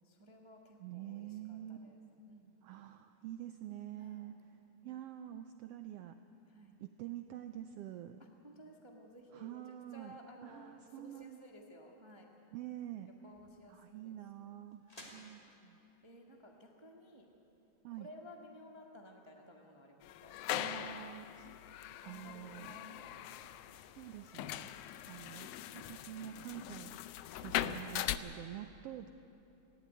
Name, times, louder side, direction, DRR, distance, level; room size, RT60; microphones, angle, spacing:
voice 1, 0.0-2.0 2.3-2.6 4.0-4.4 6.5-6.8 8.4-9.6 9.9-12.3 13.2-14.1 14.9-15.1 16.0-17.3 18.0-20.4 22.0-23.7 27.3-27.6 28.1-28.5, equal, 35° right, 1 dB, 0.4 m, -56 dB
voice 2, 0.8-1.9 2.6-4.3 4.8-6.2 6.8-8.2 9.3-11.4 12.5-13.1 13.7-15.8 17.8-18.1 20.5-21.6 22.0-22.8 24.0-24.7 25.1-27.0 27.3-29.3, right 12 dB, 90° right, 9 dB, 1.3 m, -47 dB
sound 1, 12.2-18.1, left 1 dB, 15° left, 2.3 m, -61 dB
sound 2, 20.0-28.2, left 13 dB, 80° left, 1.4 m, -41 dB
18.0 x 15.5 x 9.5 m, 2.9 s
omnidirectional pair, 3.4 m